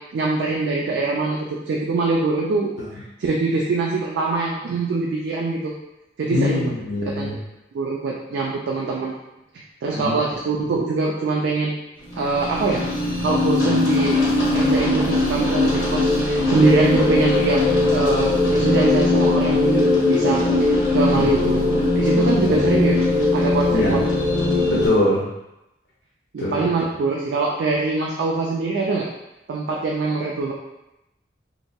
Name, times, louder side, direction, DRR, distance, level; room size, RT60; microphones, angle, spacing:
voice 1, 0.0-5.7 6.2-6.7 7.2-7.3 7.7-9.2 9.5-11.8 12.2-12.8 13.2-14.2 14.5-17.6 17.9-20.7 20.9-23.0 23.3-24.1 24.5-24.6 26.3-29.1 29.5-30.5, right 3 dB, 80° right, -2 dB, 0.3 m, -23 dB
voice 2, 6.3-7.4 9.9-10.1 21.1-21.3 23.7-24.0 24.7-25.3 26.4-26.7, left 1 dB, 75° left, -7 dB, 0.5 m, -23 dB
sound 1, 12.1-24.9, left 2 dB, 50° left, 0.9 m, -20 dB
2.8 x 2.6 x 2.2 m, 0.93 s
head